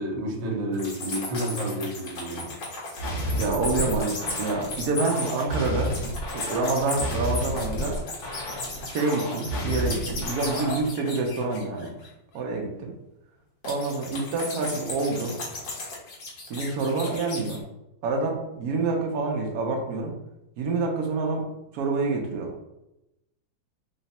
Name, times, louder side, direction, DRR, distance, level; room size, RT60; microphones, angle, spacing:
voice 1, 0.0-2.5, right 1 dB, 85° right, 1 dB, 1.5 m, -30 dB
Om-FR-plasticstarwars-pencilcase, 0.7-12.1 13.6-17.6, left 2 dB, 75° left, 1.8 m, -36 dB
sound 1, 3.0-10.9, equal, 90° left, 1.8 m, -31 dB
voice 2, 3.4-5.9 6.3-8.0 8.9-11.9 12.3-12.9 13.6-15.4 16.5-17.6 18.0-20.1 20.6-21.5 21.7-22.5, right 3 dB, 65° right, 0 dB, 1.2 m, -27 dB
4.0 x 2.3 x 4.1 m, 0.88 s
omnidirectional pair, 2.0 m